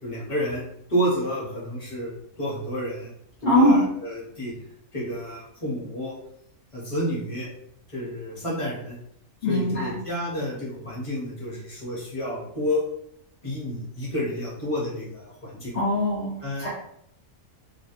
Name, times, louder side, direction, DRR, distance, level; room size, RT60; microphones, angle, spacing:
voice 1, 0.0-0.6 0.9-2.1 2.4-3.1 3.4-4.5 4.9-6.1 6.7-7.5 7.9-9.0 9.5-12.8 13.4-15.7 16.4-16.7, equal, 30° left, -5 dB, 0.8 m, -30 dB
voice 2, 3.4-3.9 9.4-10.0 15.7-16.7, left 1 dB, 50° left, -7 dB, 0.4 m, -21 dB
2.3 x 2.1 x 2.9 m, 0.70 s
omnidirectional pair, 1.4 m